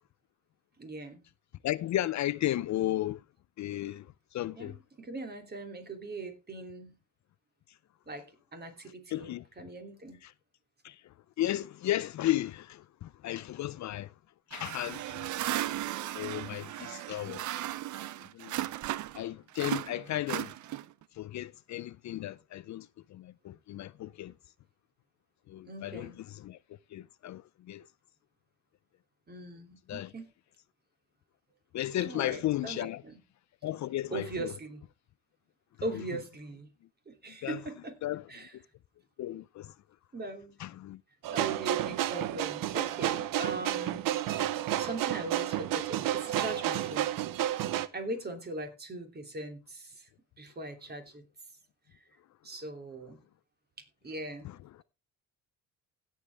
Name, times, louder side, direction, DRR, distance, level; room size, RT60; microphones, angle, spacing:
voice 1, 0.8-1.2 4.6-7.0 8.1-8.3 8.5-10.2 25.6-26.2 29.3-30.3 32.0-33.2 34.1-34.8 35.8-36.7 37.1-38.0 38.3-38.6 40.1-40.6 41.3-44.0 44.7-47.1 47.9-50.1 50.4-51.2 52.4-53.2 53.8-54.8, right 2 dB, 30° right, 2.9 m, -40 dB
voice 2, 1.6-3.2 3.6-4.1 4.3-4.7 9.1-9.4 10.8-11.0 11.4-14.1 14.5-15.3 16.1-17.6 18.3-18.5 19.1-20.5 21.2-24.3 25.5-26.1 26.4-26.6 26.9-27.4 27.7-27.9 29.9-30.1 31.7-33.0 33.6-34.5 37.4-37.6 38.0-38.6 39.2-39.7 40.6-41.0, left 14 dB, 55° left, 0.5 m, -34 dB
sound 1, 14.5-19.2 19.5-21.0, right 14 dB, 60° right, 0.6 m, -36 dB
sound 2, 41.2-47.9, right 12 dB, 75° right, 0.9 m, -31 dB
16.5 x 7.3 x 3.4 m
cardioid pair, 105°, 33 cm